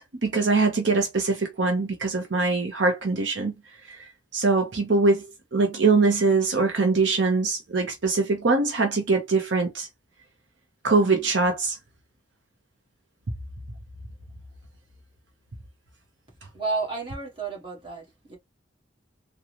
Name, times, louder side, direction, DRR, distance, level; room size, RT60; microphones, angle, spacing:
voice 1, 0.0-3.5 3.9-4.0 4.3-5.2 5.5-9.9 10.8-11.8, right 3 dB, 70° right, 0.8 m, -22 dB
voice 2, 16.5-18.4, right 3 dB, 25° right, 1.6 m, -31 dB
3.7 x 2.3 x 3.0 m
head